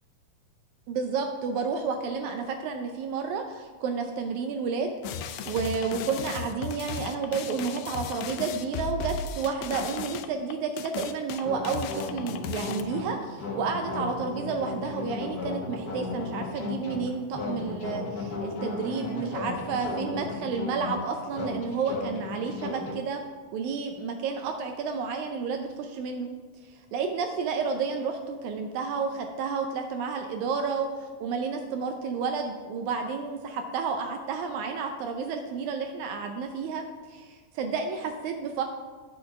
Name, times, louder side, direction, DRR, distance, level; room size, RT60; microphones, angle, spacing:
voice 1, 0.9-23.2 23.5-26.3 26.9-38.6, right 5 dB, 80° right, 5 dB, 2.0 m, -31 dB
sound 1, 5.0-12.8, left 6 dB, 85° left, 1.5 m, -36 dB
sound 2, 11.4-22.9, left 3 dB, 50° left, 1.2 m, -35 dB
9.4 x 4.4 x 5.8 m, 1.4 s
omnidirectional pair, 3.4 m